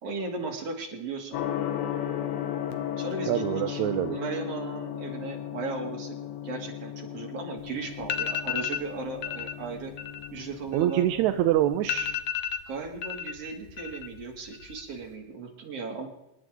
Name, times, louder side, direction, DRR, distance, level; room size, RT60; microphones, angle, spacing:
voice 1, 0.0-1.4 3.0-3.8 4.1-6.2 6.4-9.9 10.3-11.1 12.7-16.1, right 4 dB, 50° right, 0 dB, 3.3 m, -36 dB
Gong, 1.3-12.2, left 10 dB, 90° left, 2.7 m, -36 dB
voice 2, 3.3-4.2 10.7-12.2, right 13 dB, 75° right, 8 dB, 1.8 m, -25 dB
sound 1, 7.6-7.7 8.0-8.9 9.2-9.5 9.8-11.3 11.6-11.7 11.9-13.3 13.6-14.2 14.5-15.1, left 9 dB, 70° left, 1.6 m, -32 dB
25.5 x 11.0 x 3.8 m, 0.90 s
omnidirectional pair, 3.7 m